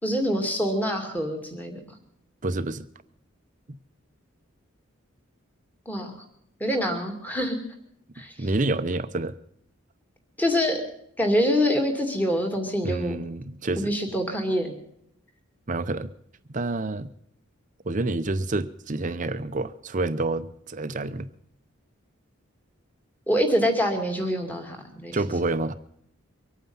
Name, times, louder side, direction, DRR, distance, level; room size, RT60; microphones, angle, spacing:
voice 1, 0.0-1.8 5.9-6.1 6.6-7.6 8.2-8.5 10.4-10.8 11.2-13.2 13.8-14.8 23.3-25.2, equal, 10° left, 3 dB, 2.4 m, -25 dB
voice 2, 2.4-2.8 8.4-9.4 12.8-13.9 15.7-16.1 16.5-17.1 17.8-21.3 25.1-25.7, right 2 dB, 40° right, 12 dB, 0.7 m, -28 dB
24.0 x 9.2 x 5.6 m, 0.69 s
head